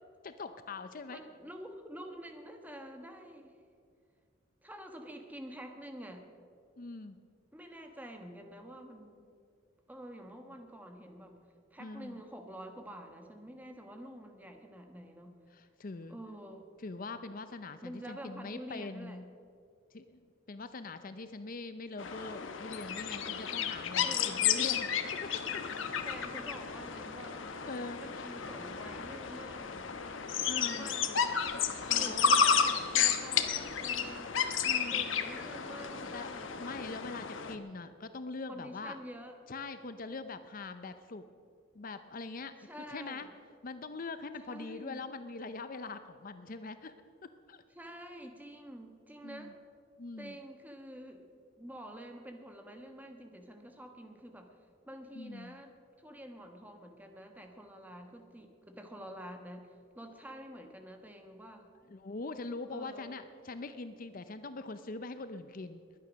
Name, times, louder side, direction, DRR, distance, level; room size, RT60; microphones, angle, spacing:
voice 1, 0.2-1.2 6.8-7.2 11.8-12.2 15.5-16.2 16.8-19.4 19.9-26.1 27.7-28.4 30.4-30.9 31.5-32.7 34.6-35.0 36.0-39.0 39.5-41.3 41.7-43.3 43.6-46.9 47.2-47.6 49.2-49.5 50.0-50.4 55.1-55.6 61.9-65.8, left 3 dB, 45° left, 10 dB, 0.6 m, -43 dB
voice 2, 1.1-3.6 4.6-6.2 7.5-9.4 9.9-11.4 11.7-15.4 16.1-16.7 17.8-19.2 23.9-24.4 26.0-27.4 28.0-29.8 30.6-31.3 31.9-34.4 34.9-36.7 38.5-39.3 42.6-43.3 44.4-45.0 47.7-49.5 50.2-51.3 51.6-54.5 54.8-55.7 56.0-61.7 62.7-63.2, equal, 10° right, 4 dB, 1.3 m, -48 dB
sound 1, 22.0-37.6, left 7 dB, 70° left, 1.1 m, -32 dB
21.5 x 9.5 x 6.3 m, 2.3 s
head